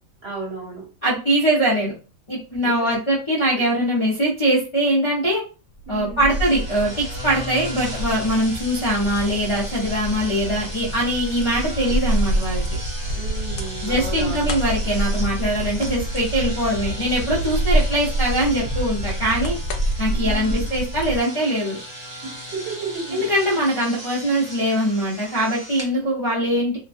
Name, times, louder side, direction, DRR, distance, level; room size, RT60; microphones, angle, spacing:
voice 1, 0.2-0.8 2.6-2.9 5.9-6.4 13.1-14.5 20.1-20.6 22.2-23.2, right 4 dB, 50° right, -3 dB, 1.6 m, -33 dB
voice 2, 1.0-1.9 2.3-5.4 5.9-12.6 13.8-19.6 20.0-21.8 23.1-26.8, right 1 dB, 30° left, -7 dB, 0.6 m, -22 dB
sound 1, 5.8-21.2, right 1 dB, 85° left, 1.0 m, -27 dB
sound 2, 6.3-25.9, equal, 30° right, 0.5 m, -37 dB
3.0 x 2.2 x 2.5 m, 0.34 s
omnidirectional pair, 1.5 m